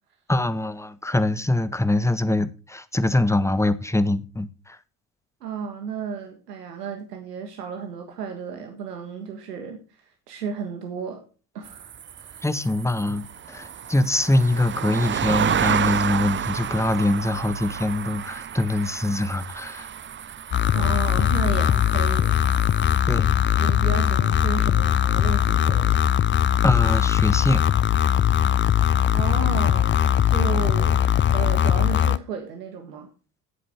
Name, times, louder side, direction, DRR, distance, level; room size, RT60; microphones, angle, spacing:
voice 1, 0.3-4.8 12.4-19.9 23.1-23.3 26.6-27.6, left 2 dB, 5° left, 1.4 m, -23 dB
voice 2, 5.4-11.3 11.5-12.4 20.7-22.4 23.6-26.0 29.1-30.0 30.3-33.1, right 6 dB, 90° right, 1.6 m, -33 dB
sound 1, 11.6-23.0, right 8 dB, 25° right, 0.6 m, -30 dB
sound 2, 20.5-32.2, left 10 dB, 25° left, 0.5 m, -20 dB
14.5 x 8.5 x 3.5 m
hypercardioid pair, 50°, 46 cm